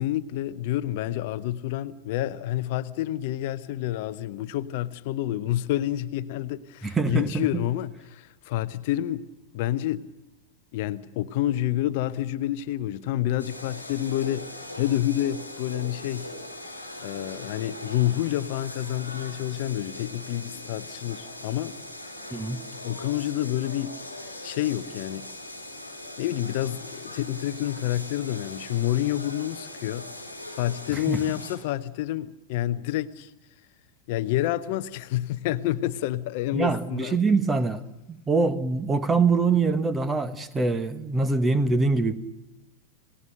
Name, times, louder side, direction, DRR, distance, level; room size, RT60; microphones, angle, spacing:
voice 1, 0.0-9.3 9.5-10.1 10.7-16.3 17.0-21.7 22.8-23.9 24.4-25.3 26.2-30.1 30.5-33.3 34.1-37.2, left 13 dB, 50° left, 0.8 m, -28 dB
voice 2, 6.8-7.5 22.3-22.6 31.1-31.2 36.5-37.8 38.1-42.1, right 4 dB, 15° right, 1.5 m, -24 dB
sound 1, 13.4-31.6, left 1 dB, 90° right, 4.8 m, -40 dB
28.5 x 18.0 x 6.7 m
figure-of-eight pair, 90°, 0 cm